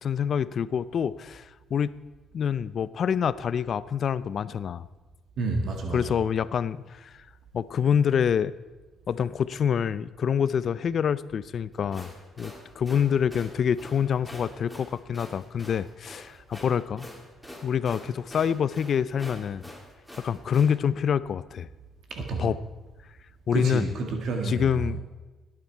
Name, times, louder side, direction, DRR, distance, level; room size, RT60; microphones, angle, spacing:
voice 1, 0.0-1.9 2.3-4.9 5.9-7.1 7.5-8.5 9.1-12.1 12.4-17.1 17.6-19.6 20.2-21.7 22.4-22.6 23.5-23.9 24.4-25.0, left 8 dB, 55° left, 17 dB, 0.4 m, -26 dB
voice 2, 5.4-6.0 22.1-22.5 23.5-24.9, right 3 dB, 70° right, 3 dB, 1.8 m, -29 dB
sound 1, 11.7-20.7, left 1 dB, ahead, 3.0 m, -45 dB
17.0 x 9.8 x 4.5 m, 1.2 s
cardioid pair, 90°, 0 cm